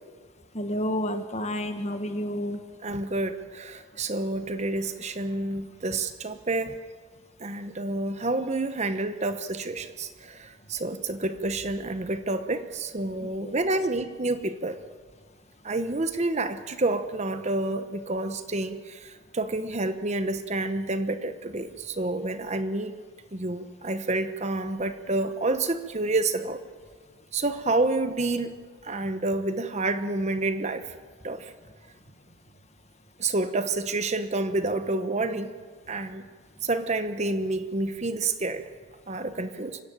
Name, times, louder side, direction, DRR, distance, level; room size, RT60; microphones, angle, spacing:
voice 1, 0.5-2.6 13.2-13.5, equal, 30° left, 7 dB, 1.6 m, -30 dB
voice 2, 2.8-6.8 7.4-14.8 15.6-22.9 23.3-26.6 27.3-28.5 28.8-30.9 31.2-31.5 33.2-35.5 35.9-36.3 36.6-38.6 39.1-39.8, right 2 dB, 30° right, 10 dB, 0.9 m, -29 dB
25.5 x 15.0 x 8.9 m, 1.5 s
head